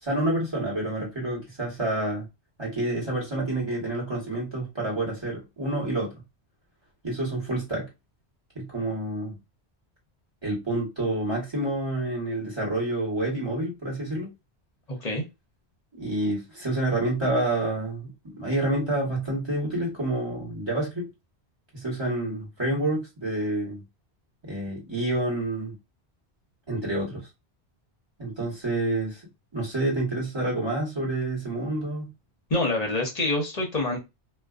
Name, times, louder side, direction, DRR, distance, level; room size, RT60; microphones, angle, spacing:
voice 1, 0.0-2.2 2.6-6.1 7.0-7.9 8.5-9.3 10.4-14.3 15.9-18.1 18.4-21.1 21.7-23.8 24.4-25.7 26.7-27.3 28.2-29.2 29.5-32.1, right 1 dB, 25° right, 1.2 m, -28 dB
voice 2, 14.9-15.2 32.5-34.0, left 2 dB, 45° left, 0.7 m, -26 dB
2.4 x 2.2 x 2.3 m
omnidirectional pair, 1.1 m